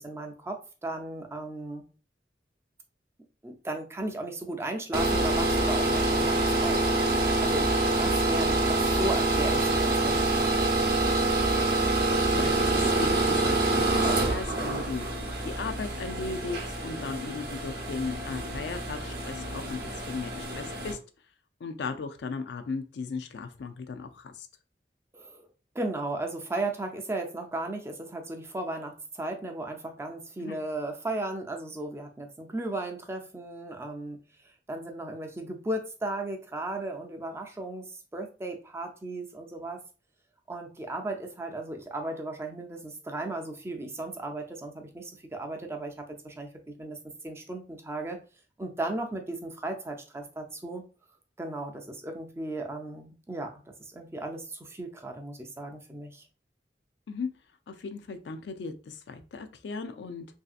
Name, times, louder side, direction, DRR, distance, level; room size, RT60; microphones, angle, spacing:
voice 1, 0.0-1.9 3.4-6.8 7.1-7.7 8.0-10.7 25.1-25.5 25.7-34.2 34.7-39.8 40.5-48.2 48.6-50.8 51.4-56.2, right 2 dB, 15° right, 3 dB, 0.4 m, -36 dB
sound 1, 4.9-20.9, right 2 dB, 55° right, 0.7 m, -26 dB
voice 2, 12.2-15.0 15.4-21.0 21.6-24.5 30.4-30.6 57.1-57.3 57.7-60.3, left 4 dB, 70° left, 8 dB, 0.4 m, -36 dB
3.1 x 2.7 x 2.4 m, 0.34 s
head